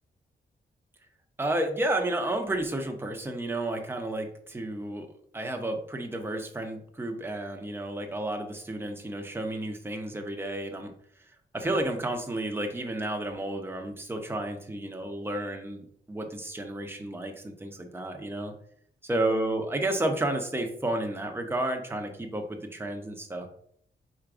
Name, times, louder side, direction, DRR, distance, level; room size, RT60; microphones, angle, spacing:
voice 1, 1.4-5.1 5.3-10.9 11.5-18.5 19.0-23.5, right 1 dB, 10° right, 3 dB, 0.6 m, -31 dB
4.7 x 3.9 x 2.5 m, 0.63 s
wide cardioid pair, 155°, 19 cm